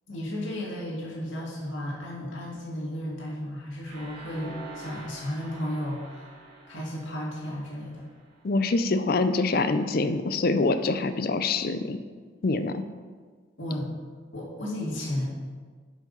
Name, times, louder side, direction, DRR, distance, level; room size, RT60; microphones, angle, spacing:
voice 1, 0.1-6.3 6.7-8.0 13.6-13.9 14.3-15.3, left 1 dB, 70° left, -4 dB, 2.0 m, -33 dB
sound 1, 3.8-8.7, right 2 dB, 40° right, 2.5 m, -46 dB
voice 2, 8.4-12.0 12.4-12.8, left 3 dB, 50° left, 10 dB, 0.4 m, -25 dB
7.8 x 5.1 x 5.3 m, 1.5 s
head